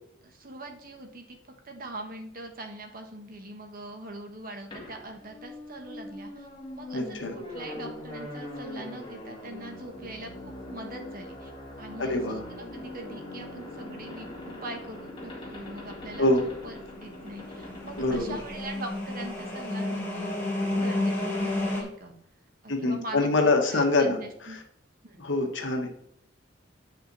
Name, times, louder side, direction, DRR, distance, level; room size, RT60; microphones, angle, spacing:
voice 1, 0.2-6.5 6.7-11.5 11.8-22.1 22.6-24.6 25.0-25.2, right 2 dB, 45° right, 4 dB, 1.4 m, -42 dB
sound 1, 4.7-19.3, left 1 dB, 25° left, 2.0 m, -42 dB
voice 2, 6.9-7.3 12.0-12.4 16.2-16.4 18.0-18.4 22.7-24.6 25.2-26.0, left 2 dB, 70° left, 3 dB, 1.5 m, -25 dB
sound 2, 17.2-21.8, left 1 dB, 10° left, 1.9 m, -31 dB
8.6 x 5.6 x 4.1 m, 0.72 s
head